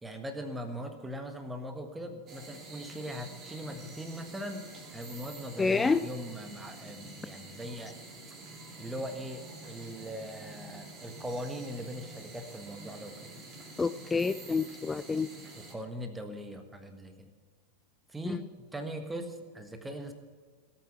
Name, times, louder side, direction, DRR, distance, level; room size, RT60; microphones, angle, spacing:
voice 1, 0.0-7.9 8.8-13.5 15.5-17.3 18.1-20.1, equal, 10° right, 6 dB, 1.5 m, -40 dB
sound 1, 2.3-15.8, right 2 dB, 30° right, 3.0 m, -48 dB
voice 2, 5.6-6.0 13.8-15.3 18.3-18.4, left 4 dB, 15° left, 13 dB, 0.4 m, -28 dB
18.0 x 8.6 x 6.0 m, 1.5 s
figure-of-eight pair, 90°, 0 cm